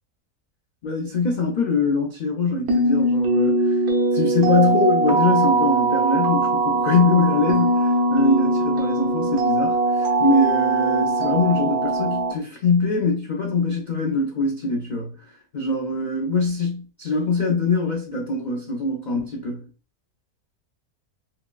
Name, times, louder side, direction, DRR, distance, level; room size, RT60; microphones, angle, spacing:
voice 1, 0.8-3.8 4.1-15.1 15.5-19.6, left 3 dB, 65° left, 0.4 m, -23 dB
dream loop, 2.7-12.3, right 2 dB, 75° right, 1.3 m, -21 dB
5.6 x 2.0 x 2.2 m
omnidirectional pair, 1.6 m